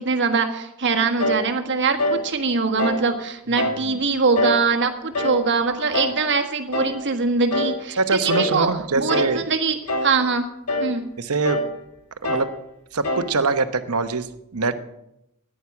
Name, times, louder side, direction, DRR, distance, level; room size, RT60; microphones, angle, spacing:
voice 1, 0.0-10.5 10.8-11.0, right 4 dB, 55° right, 5 dB, 1.5 m, -23 dB
sound 1, 1.2-1.5 2.0-2.3 2.8-3.1 3.6-3.9 4.4-4.7 5.1-5.5 5.9-6.2 6.7-7.0 7.5-7.8 8.3-8.6 9.1-9.4 9.9-10.2 10.7-10.9 11.4-11.7 12.2-12.6 13.0-13.3, left 1 dB, 80° left, 1.7 m, -24 dB
voice 2, 8.0-9.4 11.2-11.6 12.2-12.5 12.9-14.8, right 4 dB, 75° right, 10 dB, 1.0 m, -23 dB
14.0 x 10.0 x 6.0 m, 0.84 s
head